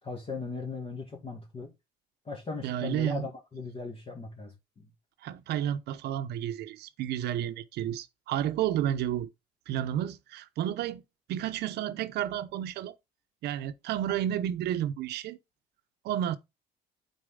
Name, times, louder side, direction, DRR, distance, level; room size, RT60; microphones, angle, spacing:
voice 1, 0.0-1.7 2.3-4.9, left 4 dB, 35° left, 2.2 m, -38 dB
voice 2, 2.6-3.3 5.2-9.3 9.7-11.0 11.3-12.9 13.4-15.4 16.0-16.4, right 11 dB, 75° right, 0.8 m, -31 dB
9.1 x 4.4 x 3.7 m
cardioid pair, 110°, 17 cm